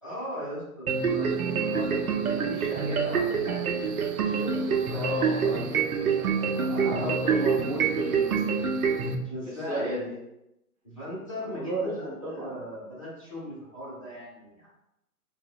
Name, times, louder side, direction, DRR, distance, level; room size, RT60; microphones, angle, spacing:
voice 1, 0.0-5.4 5.7-7.6 9.2-10.2 10.8-14.7, equal, 20° left, -10 dB, 0.6 m, -39 dB
sound 1, 0.9-9.2, right 6 dB, 70° right, 0.6 m, -26 dB
voice 2, 4.9-5.7 6.2-8.9 9.5-10.1 11.4-12.6, right 1 dB, 25° right, -8 dB, 0.6 m, -34 dB
3.7 x 2.1 x 2.3 m, 0.87 s
hypercardioid pair, 170°, 45 cm